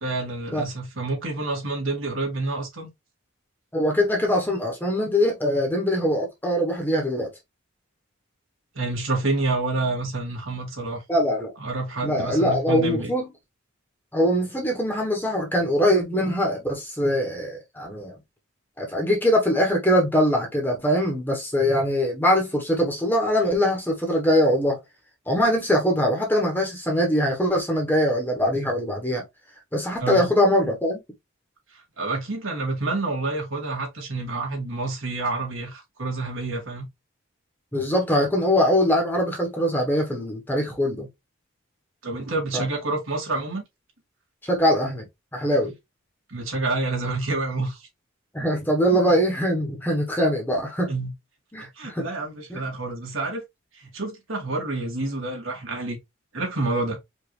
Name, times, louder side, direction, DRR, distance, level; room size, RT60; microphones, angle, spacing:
voice 1, 0.0-2.9 8.8-11.0 11.6-13.1 30.0-30.3 32.0-36.9 42.0-43.6 46.3-47.8 48.9-49.0 50.9-51.1 51.6-53.4 53.7-56.0 56.3-57.0, right 2 dB, 70° right, 2.2 m, -28 dB
voice 2, 3.7-7.3 11.1-11.5 12.0-13.3 14.1-18.1 18.8-24.8 25.3-29.2 29.7-31.0 37.7-41.1 42.5-42.6 44.4-45.0 45.3-45.7 48.3-50.9 51.5-52.1 52.5-52.6, equal, 10° left, 1.1 m, -22 dB
5.1 x 2.7 x 3.2 m
head